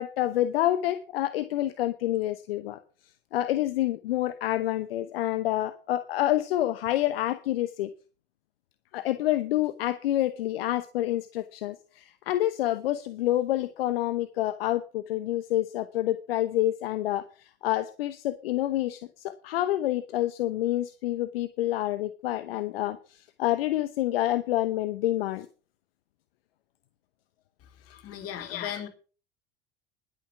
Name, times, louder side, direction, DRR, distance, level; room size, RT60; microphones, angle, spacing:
voice 1, 0.0-2.8 3.3-7.9 8.9-25.5 27.9-28.0 28.3-28.9, left 14 dB, 75° left, 12 dB, 0.9 m, -28 dB
voice 2, 28.0-28.9, left 9 dB, 50° left, 6 dB, 3.6 m, -36 dB
11.5 x 9.5 x 5.9 m, 0.36 s
hypercardioid pair, 70°, 30 cm